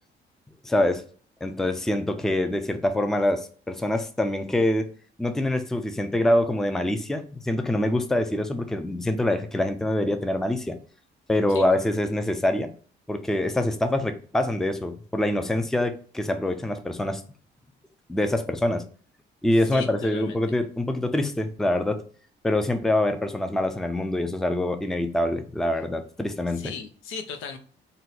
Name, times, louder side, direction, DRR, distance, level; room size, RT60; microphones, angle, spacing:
voice 1, 0.6-1.0 1.4-4.9 5.2-10.8 11.3-12.7 13.1-17.2 18.1-18.9 19.4-22.0 22.4-26.7, left 1 dB, ahead, 8 dB, 0.4 m, -25 dB
voice 2, 19.7-20.4 26.5-27.6, left 5 dB, 85° left, 6 dB, 0.6 m, -36 dB
2.7 x 2.2 x 3.9 m, 0.43 s
cardioid pair, 90°, 20 cm